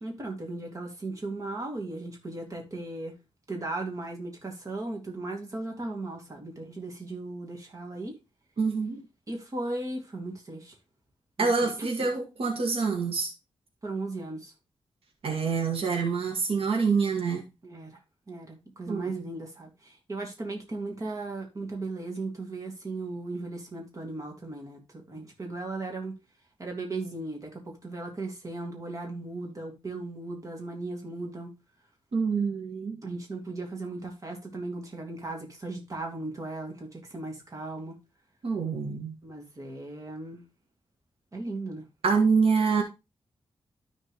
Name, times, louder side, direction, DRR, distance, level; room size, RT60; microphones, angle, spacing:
voice 1, 0.0-3.2 3.5-8.2 9.3-10.8 11.4-12.1 13.8-14.5 17.6-18.0 18.3-26.2 26.6-31.6 33.0-38.0 39.2-40.5 41.3-41.9, right 2 dB, 35° right, 2.5 m, -37 dB
voice 2, 8.6-9.0 11.4-13.3 15.2-17.4 18.9-19.2 32.1-33.0 38.4-39.1 42.0-42.8, right 5 dB, 75° right, 1.9 m, -26 dB
13.0 x 4.4 x 3.1 m
wide cardioid pair, 155°, 10 cm